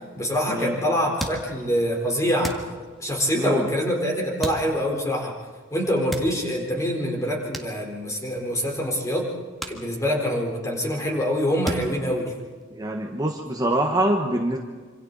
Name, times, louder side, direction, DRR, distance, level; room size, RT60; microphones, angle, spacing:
voice 1, 0.1-2.6 3.0-5.4 5.7-9.3 9.7-12.4, equal, 15° left, 0 dB, 4.1 m, -25 dB
sound 1, 1.2-1.9 2.4-3.2 4.4-5.1 6.0-6.7 7.5-8.4 8.7-8.8 9.6-10.5 10.8-11.2 11.6-12.8, right 1 dB, ahead, 1.7 m, -35 dB
voice 2, 3.3-3.7 12.7-14.6, right 1 dB, 20° right, 2 dB, 1.3 m, -24 dB
26.5 x 26.0 x 4.1 m, 1.5 s
head